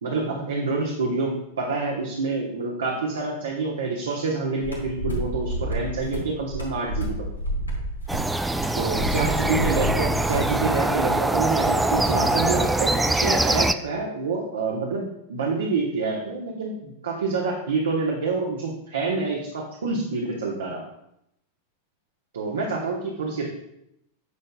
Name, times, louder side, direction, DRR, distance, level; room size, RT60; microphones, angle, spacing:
voice 1, 0.0-7.3 8.7-20.8 22.3-23.5, right 3 dB, 65° right, -2 dB, 1.1 m, -27 dB
sound 1, 4.6-10.5, equal, 85° left, 1.9 m, -30 dB
sound 2, 8.1-13.7, right 2 dB, 5° right, 0.3 m, -23 dB
9.6 x 6.6 x 2.4 m, 0.80 s
figure-of-eight pair, 90°, 0 cm